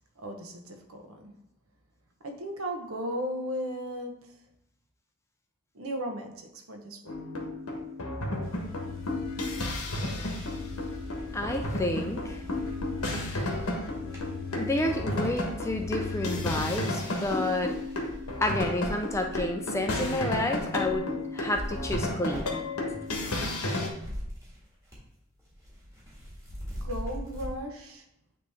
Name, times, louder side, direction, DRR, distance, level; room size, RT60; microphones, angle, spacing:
voice 1, 0.2-1.3 2.2-4.4 5.7-7.1 26.8-28.0, equal, 70° right, 3 dB, 1.1 m, -36 dB
sound 1, 7.1-23.9, left 2 dB, 85° left, 1.2 m, -33 dB
sound 2, 8.4-16.8, left 4 dB, 60° left, 1.0 m, -40 dB
sound 3, 10.4-15.5 16.1-16.7 17.0-23.5 23.7-25.1 25.4-27.5, equal, 15° right, 1.7 m, -43 dB
voice 2, 11.3-12.4 13.1-13.6 14.5-17.8 18.4-21.1 21.3-22.6, left 1 dB, 10° left, 4 dB, 0.4 m, -30 dB
9.2 x 3.2 x 3.5 m, 0.78 s
head